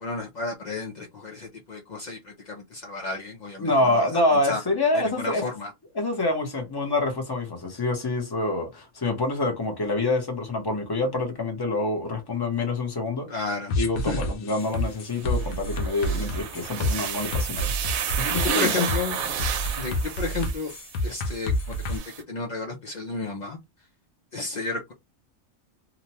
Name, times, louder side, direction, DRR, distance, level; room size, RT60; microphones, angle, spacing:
voice 1, 0.0-4.6 4.9-5.7 13.3-14.2 18.4-19.2 19.8-20.7 21.0-22.0 22.3-23.6 24.3-24.9, left 3 dB, 65° left, 0.4 m, -32 dB
voice 2, 3.6-5.4 5.9-13.3 13.8-17.7 18.2-18.7, left 2 dB, 25° left, 0.6 m, -26 dB
sound 1, 13.7-22.0, equal, 80° left, 1.0 m, -28 dB
sound 2, 14.6-14.7 15.2-21.3 21.7-22.2, right 8 dB, 90° right, 1.0 m, -31 dB
2.9 x 2.1 x 2.8 m
omnidirectional pair, 1.4 m